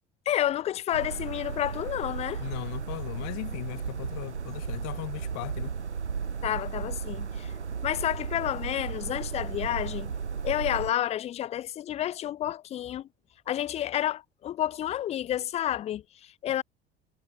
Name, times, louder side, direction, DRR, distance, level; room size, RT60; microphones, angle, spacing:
voice 1, 0.3-2.5 6.4-7.5 7.8-10.1 10.4-13.1 13.5-16.6, left 12 dB, 20° left, 0.3 m, -30 dB
sound 1, 0.9-10.9, right 6 dB, 80° right, 1.9 m, -35 dB
voice 2, 2.4-5.7, left 27 dB, 55° left, 1.6 m, -38 dB
figure-of-eight pair, 60°, 34 cm